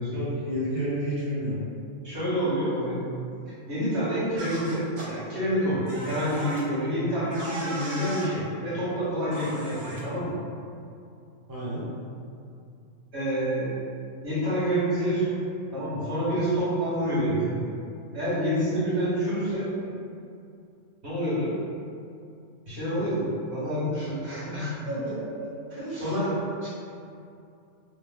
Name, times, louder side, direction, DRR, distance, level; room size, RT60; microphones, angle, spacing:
voice 1, 0.1-1.6 11.5-11.9 24.9-25.0 25.4-25.5 25.8-26.2, equal, 20° right, -11 dB, 0.8 m, -31 dB
voice 2, 2.0-3.0 3.7-10.3 13.1-13.8 14.2-15.3 15.7-17.6 18.1-19.7 21.0-21.5 22.7-24.7 25.7-26.7, equal, 55° right, -11 dB, 1.5 m, -27 dB
sound 1, 4.4-5.1 5.9-6.6 7.3-8.3 9.3-10.0, right 1 dB, 80° right, 1.2 m, -36 dB
3.2 x 2.1 x 3.5 m, 2.5 s
omnidirectional pair, 1.4 m